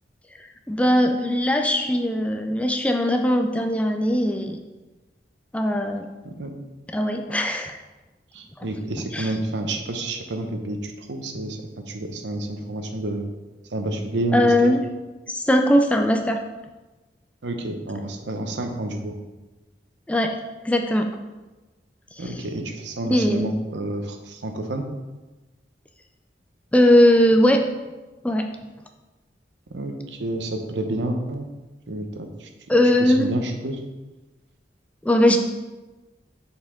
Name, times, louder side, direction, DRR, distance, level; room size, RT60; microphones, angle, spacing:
voice 1, 0.7-4.6 5.5-6.1 6.9-7.8 9.1-9.3 14.3-14.8 15.3-16.4 20.1-21.1 22.2-22.3 23.1-23.5 26.7-27.6 28.2-28.5 32.7-33.3 35.0-35.4, left 1 dB, 5° left, 4 dB, 0.4 m, -20 dB
voice 2, 8.3-11.6 11.9-13.3 13.7-14.7 17.4-19.2 22.2-24.8 29.7-31.5 31.9-32.5 33.0-33.8, right 1 dB, 80° right, 4 dB, 0.8 m, -29 dB
7.1 x 4.3 x 3.7 m, 1.2 s
head